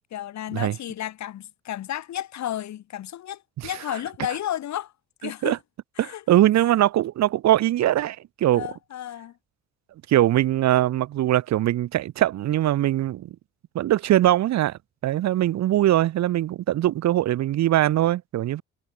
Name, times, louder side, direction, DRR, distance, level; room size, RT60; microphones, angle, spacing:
voice 1, 0.1-4.9 5.2-5.6 6.0-6.2 6.6-6.7 8.5-9.3, left 12 dB, 65° left, 1.4 m, -32 dB
voice 2, 5.2-5.6 6.0-8.7 10.1-13.4 13.7-18.6, right 13 dB, 65° right, 0.7 m, -22 dB
cardioid pair, 90°, 30 cm